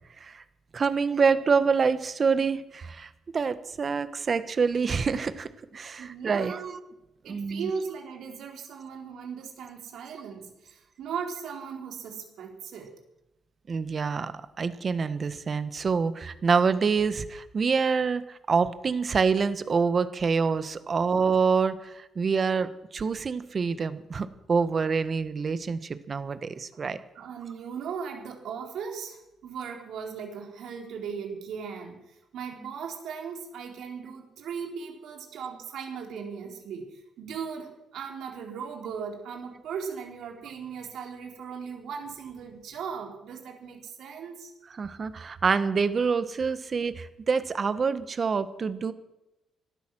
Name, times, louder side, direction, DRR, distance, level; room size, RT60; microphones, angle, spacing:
voice 1, 0.7-6.8 7.3-7.7 13.7-27.0 44.8-48.9, right 5 dB, 40° right, 12 dB, 1.3 m, -26 dB
voice 2, 6.0-6.8 7.2-12.9 27.1-44.5, right 6 dB, 75° right, 2 dB, 4.0 m, -38 dB
17.5 x 12.5 x 6.3 m, 0.93 s
cardioid pair, 90°, 0 cm